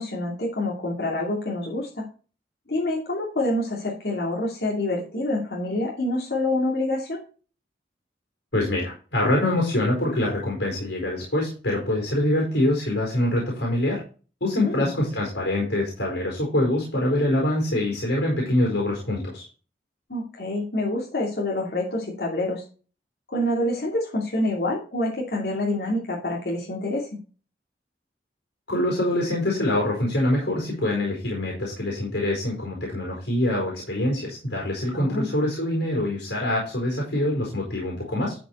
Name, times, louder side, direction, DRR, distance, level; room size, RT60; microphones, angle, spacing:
voice 1, 0.0-2.0 2.7-7.2 14.6-14.9 20.1-22.6 23.3-27.2 34.9-35.3, left 1 dB, 60° left, -3 dB, 2.7 m, -27 dB
voice 2, 8.5-14.0 14.4-19.5 28.7-38.4, left 1 dB, 75° left, -2 dB, 4.6 m, -24 dB
12.5 x 5.2 x 4.5 m, 0.36 s
head